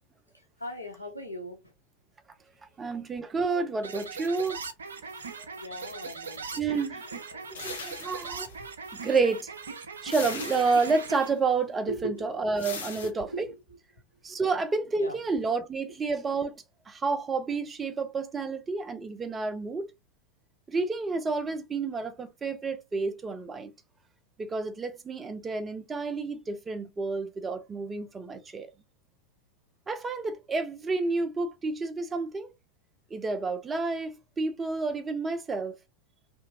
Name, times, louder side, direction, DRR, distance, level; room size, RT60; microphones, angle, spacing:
voice 1, 0.6-1.6 5.6-6.9 7.3-7.9 11.9-12.4 12.7-13.5 15.0-15.2, right 1 dB, 85° left, 0.9 m, -40 dB
voice 2, 2.8-4.6 6.6-7.1 7.6-8.5 8.9-9.5 10.0-13.5 14.2-19.9 20.7-23.7 24.4-28.7 29.9-32.5 33.1-35.8, right 4 dB, 15° right, 0.5 m, -30 dB
sound 1, 3.8-11.3, right 5 dB, 70° right, 0.5 m, -40 dB
sound 2, 7.5-9.0 10.1-11.3 12.6-13.1, left 5 dB, 65° left, 0.9 m, -40 dB
2.7 x 2.7 x 2.5 m
figure-of-eight pair, 90°, 0 cm